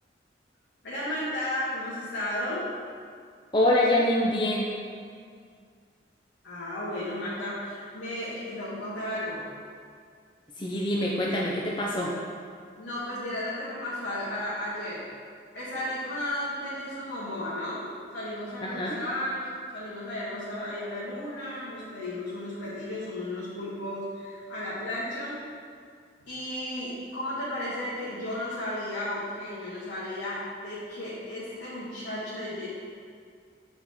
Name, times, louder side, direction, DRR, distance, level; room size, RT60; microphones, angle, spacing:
voice 1, 0.8-2.7 6.4-9.5 12.8-15.0 15.5-17.9 18.1-25.4 26.2-32.7, left 1 dB, 90° left, -10 dB, 1.5 m, -34 dB
voice 2, 3.5-4.7 10.6-12.1 18.6-19.0, left 1 dB, 25° left, -4 dB, 0.6 m, -25 dB
7.6 x 4.3 x 4.2 m, 2.2 s
head